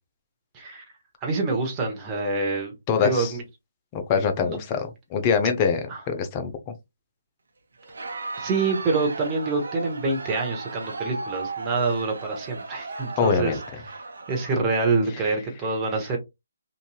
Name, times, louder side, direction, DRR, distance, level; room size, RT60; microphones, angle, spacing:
voice 1, 1.2-2.7 3.0-3.4 4.4-4.6 5.9-6.0 8.4-13.6 14.3-16.2, right 3 dB, 20° right, 0.9 m, -26 dB
voice 2, 2.9-3.3 3.9-6.7 13.2-13.6, left 6 dB, 25° left, 0.6 m, -24 dB
Crowd, 7.8-15.3, right 3 dB, 65° right, 0.7 m, -37 dB
3.0 x 2.6 x 2.2 m
figure-of-eight pair, 150°, 0 cm